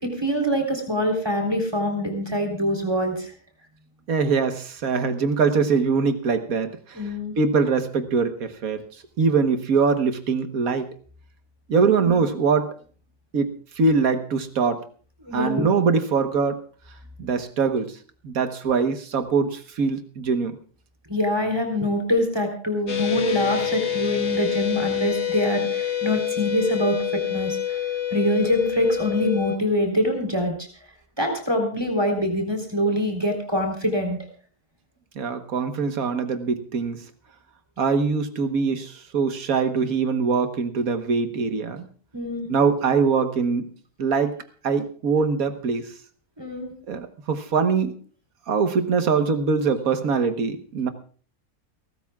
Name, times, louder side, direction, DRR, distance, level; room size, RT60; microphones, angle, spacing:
voice 1, 0.0-3.3 6.9-7.3 12.0-12.2 15.2-15.7 21.1-30.7 31.2-34.2 42.1-42.5 46.4-46.7, left 1 dB, 15° right, 3 dB, 3.8 m, -24 dB
voice 2, 4.1-8.8 9.2-10.9 11.7-12.7 13.3-14.9 15.3-16.6 17.2-18.0 18.2-20.6 35.2-37.0 37.8-41.9 42.5-43.7 44.0-44.4 44.6-45.9 46.9-47.9 48.5-50.9, right 5 dB, 65° right, 9 dB, 1.7 m, -23 dB
sound 1, 22.9-29.6, left 10 dB, 45° left, 1.9 m, -27 dB
29.5 x 13.0 x 2.4 m, 0.41 s
omnidirectional pair, 1.6 m